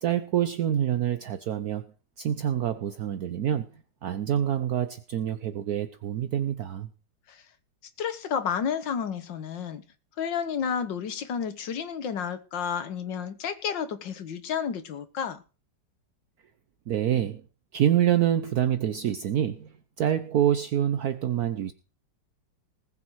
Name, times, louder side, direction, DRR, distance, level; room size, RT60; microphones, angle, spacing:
voice 1, 0.0-1.8 2.2-6.9 16.9-17.4 17.7-21.7, right 10 dB, 65° right, 1.2 m, -26 dB
voice 2, 8.0-9.8 10.2-15.4, left 7 dB, 90° left, 2.0 m, -31 dB
20.0 x 7.3 x 4.7 m
omnidirectional pair, 1.9 m